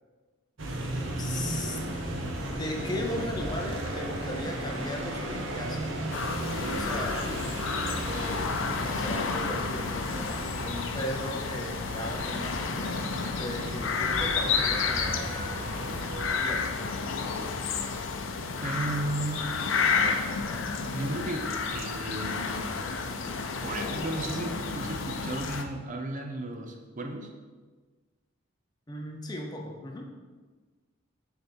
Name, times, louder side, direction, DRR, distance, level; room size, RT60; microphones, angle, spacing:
sound 1, 0.6-16.3, right 1 dB, 75° right, 0.9 m, -35 dB
voice 1, 1.2-1.8 2.3-5.9 6.7-7.3 8.0-13.1 13.4-15.6 16.4-16.8 28.9-30.1, left 1 dB, 20° left, 0 dB, 0.6 m, -37 dB
sound 2, 6.1-25.6, left 5 dB, 75° left, 0.6 m, -31 dB
voice 2, 18.6-19.5 20.8-22.5 23.6-27.3, right 2 dB, 40° right, 4 dB, 0.6 m, -34 dB
6.5 x 4.0 x 4.4 m, 1.4 s
head